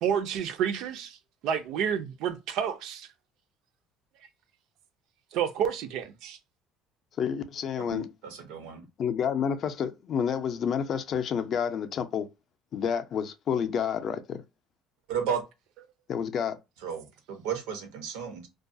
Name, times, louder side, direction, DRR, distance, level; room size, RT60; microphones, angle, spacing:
voice 1, 0.0-1.2 1.4-3.1 5.3-6.4, right 8 dB, 70° right, 0.4 m, -29 dB
voice 2, 7.2-8.1 9.0-12.3 12.7-14.4 16.1-16.6, left 7 dB, 45° left, 0.4 m, -29 dB
voice 3, 7.8-8.8 15.1-15.4 16.8-18.5, right 7 dB, 90° right, 0.8 m, -33 dB
2.3 x 2.2 x 2.6 m
cardioid pair, 120°, 0 cm